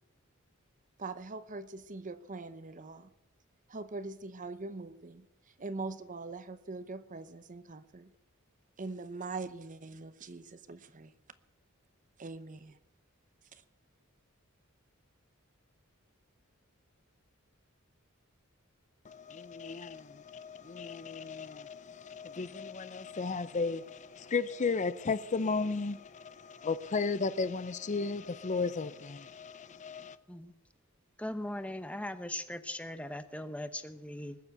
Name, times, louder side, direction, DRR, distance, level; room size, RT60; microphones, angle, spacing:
voice 1, 1.0-3.1 3.7-5.3 5.6-8.1 8.8-11.1 12.2-12.8 13.5-13.6, right 3 dB, 40° right, 13 dB, 0.8 m, -42 dB
voice 2, 19.0-30.2, left 4 dB, 35° left, 14 dB, 0.5 m, -35 dB
voice 3, 31.2-34.4, left 1 dB, 5° left, 10 dB, 0.9 m, -39 dB
20.0 x 7.4 x 8.0 m, 0.88 s
head